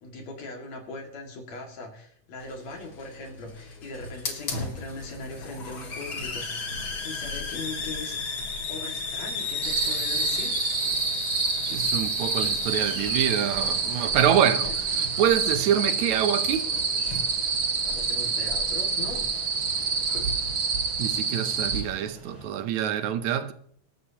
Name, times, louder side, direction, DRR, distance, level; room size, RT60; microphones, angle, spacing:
voice 1, 0.0-6.7 7.0-8.2 8.7-10.6 17.7-19.3, left 2 dB, 65° left, 3.4 m, -40 dB
Hiss, 2.4-20.3, left 4 dB, 45° left, 2.7 m, -35 dB
sound 1, 9.6-21.8, right 5 dB, 45° right, 1.6 m, -27 dB
voice 2, 11.7-16.7 21.0-23.5, right 9 dB, 80° right, 2.1 m, -26 dB
Fixed-wing aircraft airplane, 12.5-22.5, left 1 dB, 10° right, 6.3 m, -48 dB
26.0 x 13.0 x 2.9 m
omnidirectional pair, 3.4 m